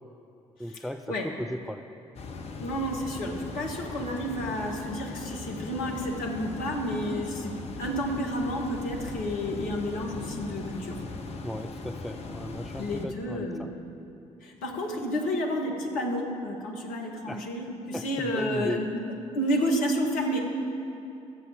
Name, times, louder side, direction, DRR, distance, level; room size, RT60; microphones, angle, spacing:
voice 1, 0.6-1.9 11.4-13.7 17.3-17.5 17.9-18.9, equal, ahead, 8 dB, 0.4 m, -36 dB
sound 1, 2.1-13.1, left 3 dB, 40° left, 1.0 m, -39 dB
voice 2, 2.6-11.0 12.8-13.7 14.4-18.8 19.3-20.4, equal, 60° left, 0 dB, 1.7 m, -30 dB
13.0 x 7.6 x 7.0 m, 2.7 s
figure-of-eight pair, 45°, 16 cm